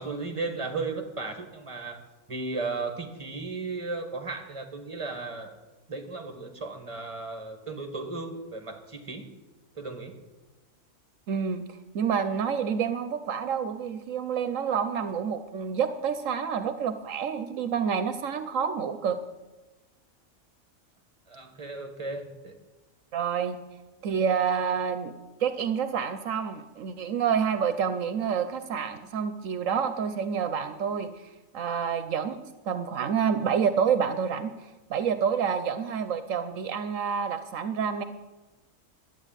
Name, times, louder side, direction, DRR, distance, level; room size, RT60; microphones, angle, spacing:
voice 1, 0.0-2.0 2.3-5.6 5.9-9.3 9.8-10.2 21.3-22.5, right 3 dB, 25° right, 5 dB, 1.8 m, -35 dB
voice 2, 11.3-19.2 23.1-23.6 24.0-25.1 25.4-31.3 31.5-32.4 32.6-34.5 34.9-38.0, right 7 dB, 75° right, 10 dB, 1.2 m, -28 dB
12.0 x 9.1 x 9.0 m, 1.1 s
omnidirectional pair, 1.4 m